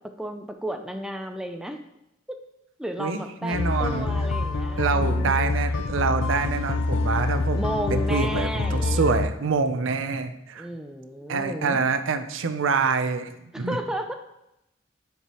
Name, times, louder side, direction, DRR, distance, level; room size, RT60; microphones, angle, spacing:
voice 1, 0.2-1.8 2.8-5.3 7.5-9.0 10.6-11.8 13.5-14.1, equal, 5° right, 5 dB, 0.3 m, -33 dB
voice 2, 3.0-4.1 4.8-10.7 11.3-13.8, right 4 dB, 80° right, 9 dB, 0.5 m, -26 dB
sound 1, 3.5-9.3, left 3 dB, 80° left, 0.5 m, -26 dB
9.8 x 4.6 x 3.0 m, 0.87 s
head